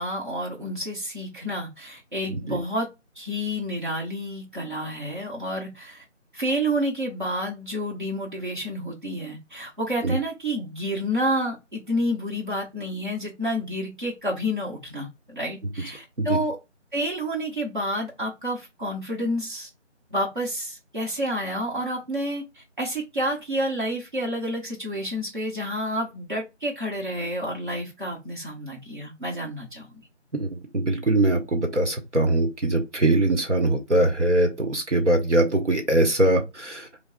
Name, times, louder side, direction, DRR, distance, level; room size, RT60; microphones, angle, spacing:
voice 1, 0.0-2.9 3.2-6.0 6.3-16.6 16.9-19.7 20.1-22.4 22.8-29.9, equal, 40° right, 1.2 m, -29 dB
voice 2, 2.3-2.6 10.0-10.1 16.2-16.3 30.3-36.9, right 2 dB, 70° right, 1.2 m, -22 dB
6.2 x 2.3 x 2.3 m
figure-of-eight pair, 175°, 37 cm